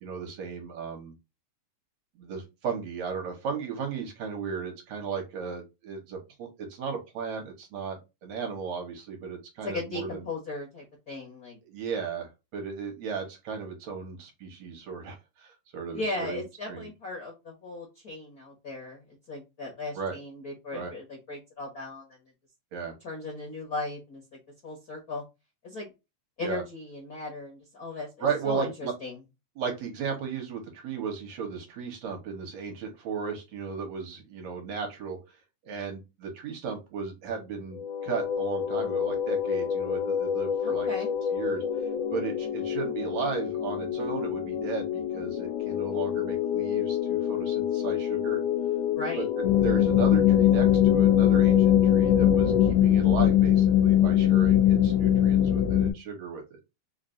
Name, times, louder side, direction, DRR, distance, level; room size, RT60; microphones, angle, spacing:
voice 1, 0.0-1.1 2.2-10.2 11.7-16.4 16.7-16.9 20.0-20.2 20.7-20.9 22.7-22.9 26.4-26.6 28.2-28.9 29.6-35.2 35.6-40.9 41.3-41.6 42.1-48.4 49.2-49.3 49.6-56.6, right 6 dB, 65° right, 3 dB, 2.1 m, -35 dB
voice 2, 9.6-11.6 15.9-19.0 19.3-22.1 23.0-25.2 25.6-25.9 26.4-29.2 40.6-41.1 48.9-49.2, left 2 dB, 55° left, -2 dB, 1.1 m, -37 dB
sound 1, 37.7-52.7, left 8 dB, 90° left, 2.1 m, -29 dB
sound 2, 49.4-55.9, left 11 dB, 75° left, 1.4 m, -20 dB
4.9 x 2.6 x 2.5 m, 0.24 s
omnidirectional pair, 3.5 m